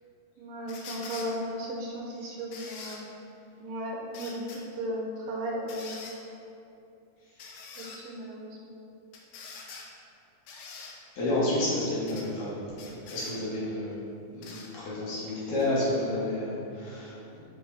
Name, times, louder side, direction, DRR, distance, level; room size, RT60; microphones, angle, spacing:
voice 1, 0.4-3.2 3.6-4.4 4.8-6.3 7.8-8.8, equal, 75° right, -1 dB, 2.4 m, -36 dB
sound 1, 0.7-1.3 2.5-3.0 4.1-4.6 5.7-6.2 7.4-8.0 9.1-9.9 10.5-10.9 12.1-12.3 12.8-13.3 14.4-14.7 15.6-15.7, left 4 dB, 75° left, 1.8 m, -44 dB
voice 2, 11.2-14.0 14.3-14.5 14.7-17.2, left 1 dB, 60° left, -9 dB, 3.0 m, -30 dB
9.3 x 4.4 x 4.1 m, 2.7 s
omnidirectional pair, 4.4 m